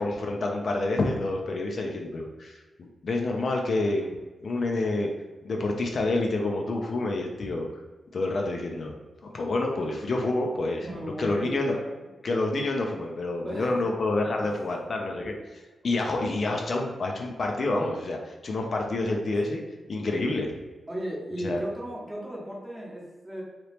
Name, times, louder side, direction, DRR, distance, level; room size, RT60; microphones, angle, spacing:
voice 1, 0.0-4.1 4.4-5.1 5.4-7.7 8.1-8.9 9.2-10.9 11.2-11.7 12.2-15.3 15.8-19.6 19.9-20.5 21.4-21.6, left 2 dB, 50° left, 1 dB, 0.4 m, -28 dB
voice 2, 10.8-12.0 13.4-13.9 14.4-14.5 15.2-15.3 20.9-23.4, equal, 10° right, -3 dB, 0.8 m, -35 dB
2.9 x 2.9 x 3.2 m, 1.2 s
wide cardioid pair, 125°, 0 cm